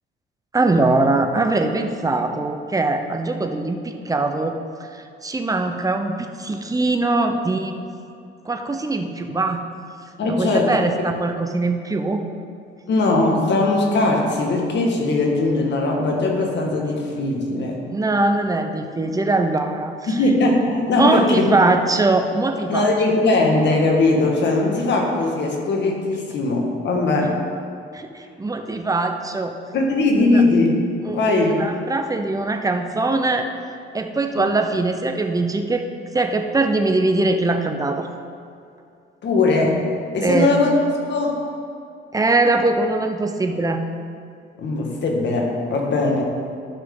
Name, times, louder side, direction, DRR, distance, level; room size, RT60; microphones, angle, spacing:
voice 1, 0.5-4.5 4.9-7.8 8.4-9.6 10.3-12.2 17.9-20.2 20.8-22.9 27.9-29.5 30.1-30.4 31.0-33.5 33.9-35.8 36.1-38.1 40.2-40.5 42.1-43.8, right 2 dB, 15° right, 5 dB, 0.8 m, -22 dB
voice 2, 10.2-10.8 12.9-17.8 20.1-21.8 22.7-27.4 29.7-30.7 31.1-31.5 39.2-39.9 40.1-40.7 41.1-41.4 44.6-46.2, left 2 dB, 65° left, 0 dB, 1.8 m, -20 dB
12.5 x 5.8 x 3.9 m, 2.4 s
cardioid pair, 90°, 20 cm